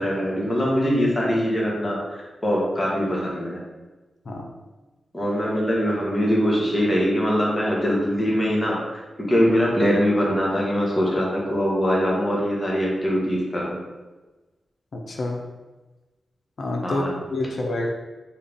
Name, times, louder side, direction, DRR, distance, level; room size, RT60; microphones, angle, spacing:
voice 1, 0.0-3.6 5.1-13.8 16.8-17.1, equal, 30° left, -4 dB, 1.3 m, -22 dB
voice 2, 14.9-15.4 16.6-17.0 17.3-17.9, left 2 dB, 65° left, 1 dB, 0.4 m, -27 dB
3.6 x 2.3 x 3.4 m, 1.2 s
cardioid pair, 50°, 0 cm